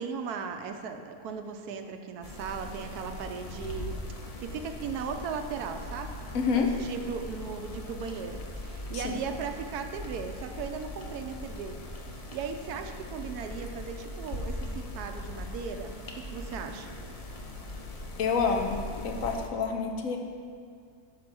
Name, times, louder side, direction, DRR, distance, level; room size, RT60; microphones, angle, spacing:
voice 1, 0.0-4.0 4.4-6.1 6.5-11.8 12.0-16.9, right 6 dB, 80° right, 6 dB, 1.1 m, -37 dB
sound 1, 2.2-19.5, left 1 dB, 45° left, 0.5 m, -40 dB
voice 2, 6.3-6.7 8.9-9.1 18.2-20.2, left 5 dB, 65° left, 4 dB, 1.2 m, -28 dB
10.5 x 4.2 x 6.1 m, 2.2 s
omnidirectional pair, 1.6 m